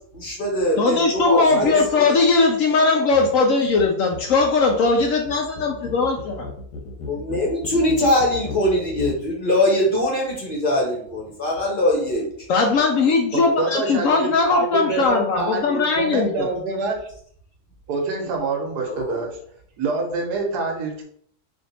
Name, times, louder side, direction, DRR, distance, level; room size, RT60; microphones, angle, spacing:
voice 1, 0.1-2.0 7.1-12.3 18.8-19.2, left 1 dB, 40° left, -2 dB, 1.0 m, -22 dB
voice 2, 0.8-6.5 12.5-16.5, left 4 dB, 70° left, 2 dB, 0.8 m, -19 dB
voice 3, 1.5-1.8 13.3-17.1 17.9-19.4 19.8-21.0, right 3 dB, 80° right, 2 dB, 1.4 m, -26 dB
sound 1, 3.1-3.4 3.6-9.3, left 3 dB, 85° left, 1.1 m, -36 dB
3.5 x 2.6 x 4.0 m, 0.63 s
omnidirectional pair, 1.7 m